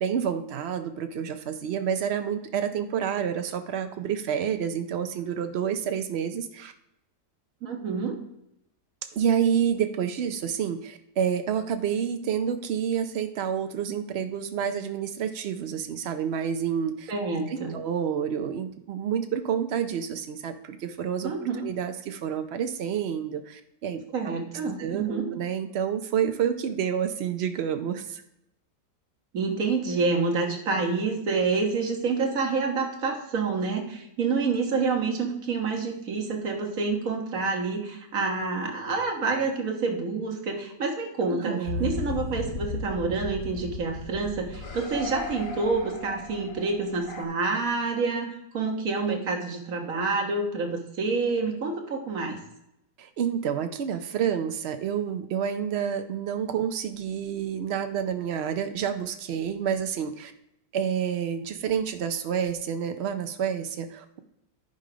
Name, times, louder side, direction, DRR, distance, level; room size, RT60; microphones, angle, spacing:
voice 1, 0.0-6.7 9.1-17.1 17.5-21.3 21.6-24.0 24.8-28.2 41.3-41.9 53.0-60.3 60.7-64.2, right 8 dB, 70° right, 8 dB, 0.6 m, -29 dB
voice 2, 7.6-8.2 17.1-17.7 21.2-21.6 24.1-25.2 29.3-48.3 48.5-52.4, right 4 dB, 55° right, 1 dB, 1.7 m, -28 dB
sound 1, 41.6-47.2, left 4 dB, 35° left, 1.0 m, -36 dB
10.5 x 5.3 x 5.0 m, 0.84 s
omnidirectional pair, 1.8 m